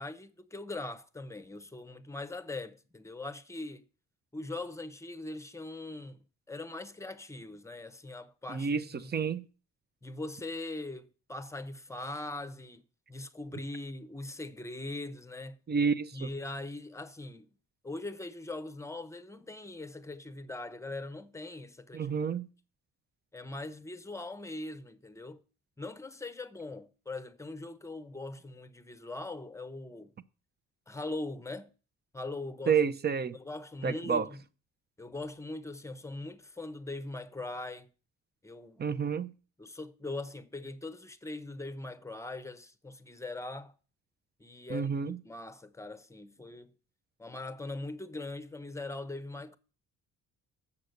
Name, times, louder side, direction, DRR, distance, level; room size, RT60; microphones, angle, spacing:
voice 1, 0.0-3.9 4.3-6.2 6.5-9.1 10.0-12.8 13.1-15.6 16.1-17.5 17.8-22.1 23.3-25.4 25.8-30.1 30.9-31.7 32.1-32.8 33.3-34.4 35.0-37.9 38.4-38.9 39.6-43.7 44.4-46.7 47.2-49.6, left 2 dB, 10° left, 0.8 m, -41 dB
voice 2, 8.5-9.4 15.7-16.3 21.9-22.5 32.7-33.4 33.8-34.3 38.8-39.3 44.7-45.2, right 6 dB, 35° right, 0.6 m, -29 dB
7.2 x 6.4 x 6.5 m
cardioid pair, 90°, 30 cm